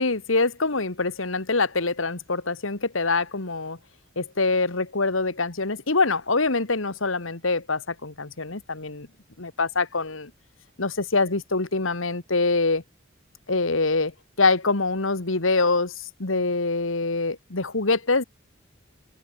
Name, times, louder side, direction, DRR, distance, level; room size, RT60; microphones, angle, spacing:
voice 1, 0.0-3.8 4.2-9.1 9.4-10.3 10.8-12.8 13.5-14.1 14.4-18.2, left 3 dB, 75° left, 2.0 m, -24 dB
open air
head